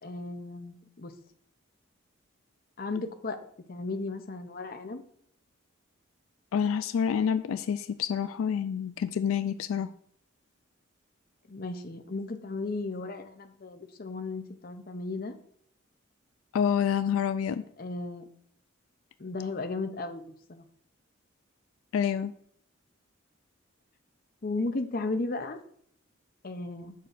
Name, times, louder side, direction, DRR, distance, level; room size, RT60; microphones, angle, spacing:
voice 1, 0.0-1.1 2.8-3.4 3.7-5.0 11.5-15.4 17.8-18.2 19.2-20.7 24.4-25.6 26.4-26.9, left 3 dB, 45° left, 6 dB, 0.6 m, -35 dB
voice 2, 6.5-9.9 16.5-17.6 21.9-22.3, left 7 dB, 85° left, 11 dB, 0.3 m, -28 dB
8.0 x 6.4 x 2.5 m, 0.64 s
head